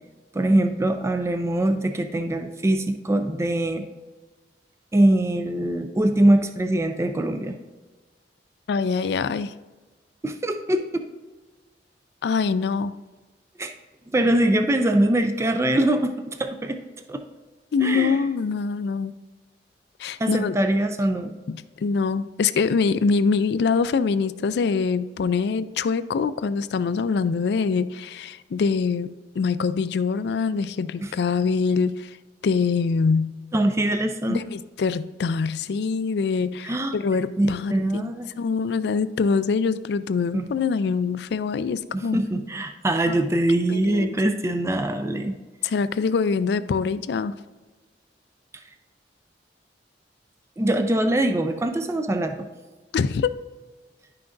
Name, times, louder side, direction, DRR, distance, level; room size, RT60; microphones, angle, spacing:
voice 1, 0.3-3.8 4.9-7.5 10.2-10.9 13.6-13.7 14.1-16.8 17.1-17.2 17.8-18.3 20.2-21.3 31.0-31.1 33.5-34.4 36.6-37.0 37.4-38.3 40.3-40.5 41.9-45.4 50.6-52.5, right 1 dB, 15° right, 7 dB, 0.4 m, -23 dB
voice 2, 8.7-9.5 12.2-12.9 17.7-19.1 20.0-20.5 21.5-29.1 29.4-32.1 32.4-33.3 34.3-38.1 38.4-42.2 43.1-43.2 43.7-44.2 45.6-47.3 52.9-53.4, left 5 dB, 65° left, 15 dB, 0.3 m, -24 dB
10.5 x 5.8 x 2.6 m, 1.2 s
head